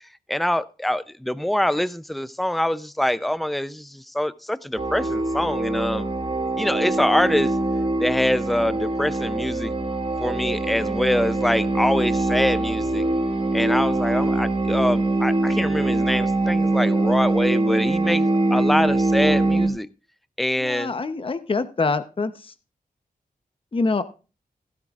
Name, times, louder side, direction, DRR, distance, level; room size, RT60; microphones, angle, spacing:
voice 1, 0.3-6.1 6.6-7.6 8.0-9.7 10.2-13.0 13.5-19.9 20.4-20.9, left 1 dB, ahead, 0.5 m, -24 dB
sound 1, 4.8-19.7, right 2 dB, 40° right, 2.5 m, -23 dB
voice 2, 20.6-22.5 23.7-24.0, left 3 dB, 35° left, 0.8 m, -25 dB
15.5 x 12.5 x 2.4 m
wide cardioid pair, 95°, 15 cm